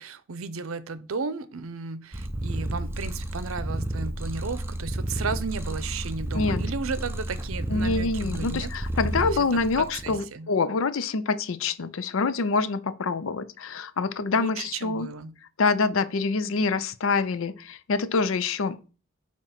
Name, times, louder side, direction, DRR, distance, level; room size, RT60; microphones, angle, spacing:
voice 1, 0.0-8.7 9.2-10.5 14.4-15.3, right 4 dB, 80° right, 0.7 m, -34 dB
Purr, 2.1-10.2, right 1 dB, 10° right, 0.7 m, -31 dB
voice 2, 7.7-15.1 15.6-18.8, left 4 dB, 70° left, 0.5 m, -26 dB
8.8 x 3.0 x 5.7 m
head